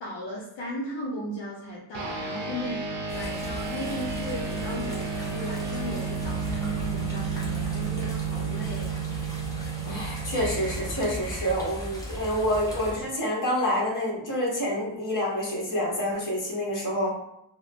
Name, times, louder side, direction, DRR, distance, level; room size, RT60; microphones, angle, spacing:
voice 1, 0.0-2.8 3.1-8.9, equal, 65° left, -5 dB, 0.7 m, -36 dB
sound 1, 1.9-11.7, right 6 dB, 65° right, 0.6 m, -32 dB
sound 2, 3.1-12.9, equal, 10° left, 0.6 m, -37 dB
voice 2, 9.9-17.2, equal, 40° left, -4 dB, 1.0 m, -27 dB
2.9 x 2.0 x 2.4 m, 0.80 s
wide cardioid pair, 140°, 47 cm